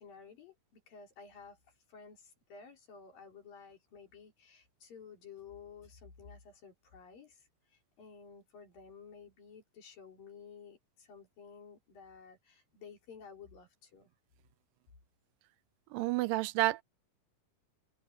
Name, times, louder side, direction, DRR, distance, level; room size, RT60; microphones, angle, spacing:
voice 1, 0.0-1.6 1.9-14.1, left 6 dB, 85° left, 6.6 m, -53 dB
voice 2, 15.9-16.8, right 18 dB, 90° right, 2.3 m, -30 dB
omnidirectional pair, 3.9 m